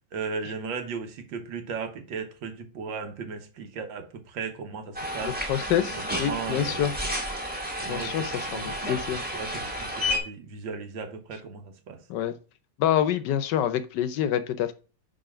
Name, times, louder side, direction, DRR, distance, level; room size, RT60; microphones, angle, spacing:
voice 1, 0.1-5.7 5.9-6.9 7.8-8.7 9.3-12.0, right 5 dB, 80° right, 1.8 m, -36 dB
sound 1, 4.9-10.2, equal, 5° right, 1.4 m, -31 dB
voice 2, 5.2-6.9 7.9-9.2 12.1-12.4 12.8-14.7, left 10 dB, 75° left, 1.2 m, -27 dB
5.0 x 4.8 x 6.0 m
omnidirectional pair, 2.0 m